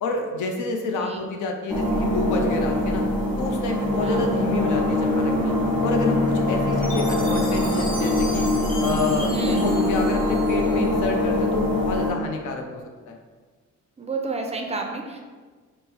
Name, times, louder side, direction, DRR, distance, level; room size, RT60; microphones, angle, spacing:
voice 1, 0.0-3.0 3.4-5.5 5.8-8.5 8.8-12.8 13.1-13.2, left 3 dB, 80° left, 3 dB, 0.5 m, -28 dB
sound 1, 1.7-12.1, left 1 dB, 5° left, 1.0 m, -23 dB
Chime, 6.8-11.1, left 1 dB, 25° left, 0.9 m, -38 dB
voice 2, 9.3-9.6 14.0-15.2, right 3 dB, 20° right, 2 dB, 0.3 m, -30 dB
3.6 x 2.0 x 2.8 m, 1.4 s
cardioid pair, 90°, 30 cm